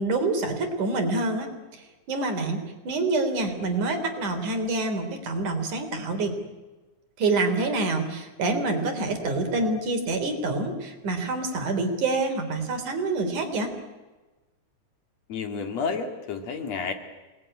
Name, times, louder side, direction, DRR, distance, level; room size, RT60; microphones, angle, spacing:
voice 1, 0.0-1.5 1.7-6.3 7.2-13.7, right 2 dB, 85° right, 6 dB, 4.9 m, -27 dB
voice 2, 15.3-16.9, left 5 dB, 60° left, 6 dB, 3.4 m, -30 dB
27.5 x 20.0 x 9.9 m, 1.2 s
omnidirectional pair, 3.4 m